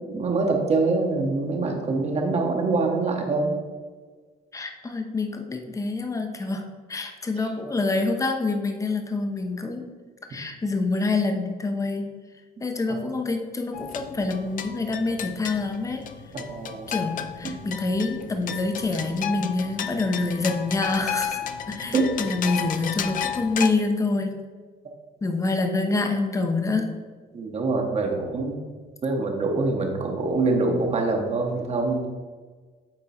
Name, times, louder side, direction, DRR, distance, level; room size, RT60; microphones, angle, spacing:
voice 1, 0.1-3.5 12.9-13.0 16.3-16.9 17.4-17.6 21.9-22.1 27.3-28.6 29.0-32.1, right 3 dB, 40° right, 2 dB, 1.2 m, -24 dB
voice 2, 4.5-6.6 6.9-9.8 10.3-12.1 12.6-16.0 16.9-21.4 21.7-24.4 25.2-26.9, left 3 dB, 20° left, 5 dB, 0.8 m, -26 dB
sound 1, 13.7-23.7, left 9 dB, 50° left, 0.6 m, -33 dB
8.8 x 3.7 x 4.3 m, 1.5 s
cardioid pair, 110°, 17 cm